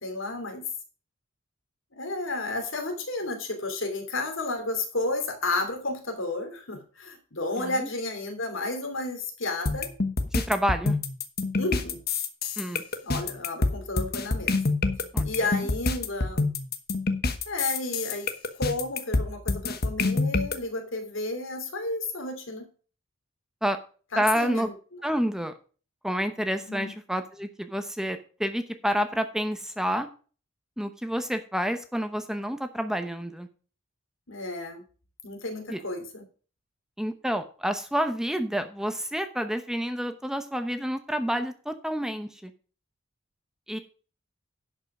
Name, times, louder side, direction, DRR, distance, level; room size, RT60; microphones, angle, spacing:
voice 1, 0.0-0.6 1.9-9.9 11.5-12.0 13.0-14.6 15.2-16.5 17.5-18.3 18.6-22.6 24.1-24.7 26.7-26.9 34.3-34.8 35.2-36.2, left 2 dB, 75° left, 5 dB, 2.9 m, -32 dB
voice 2, 7.6-7.9 10.3-11.0 12.6-12.8 15.1-15.3 23.6-23.8 24.2-24.7 25.0-25.5 26.0-30.1 30.8-33.5 35.7-35.8 37.0-42.5 43.7-43.8, equal, 5° right, 8 dB, 0.8 m, -29 dB
sound 1, 9.7-20.6, left 3 dB, 50° left, 1.1 m, -27 dB
11.0 x 5.5 x 6.1 m, 0.39 s
head